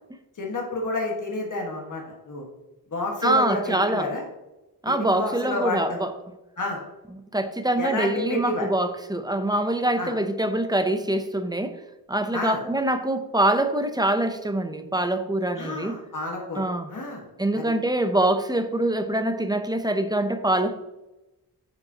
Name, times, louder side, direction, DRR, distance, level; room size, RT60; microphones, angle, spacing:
voice 1, 0.4-2.4 2.9-4.2 4.9-6.0 6.6-6.8 7.8-8.7 10.0-10.1 12.3-12.6 15.6-17.2 17.5-17.6, left 2 dB, 55° left, -1 dB, 1.6 m, -30 dB
voice 2, 3.2-4.1 4.8-6.1 7.3-11.8 12.1-16.0 16.6-16.9 17.4-20.8, right 1 dB, 10° right, 8 dB, 0.7 m, -24 dB
9.0 x 5.1 x 2.9 m, 1.0 s
wide cardioid pair, 70°, 37 cm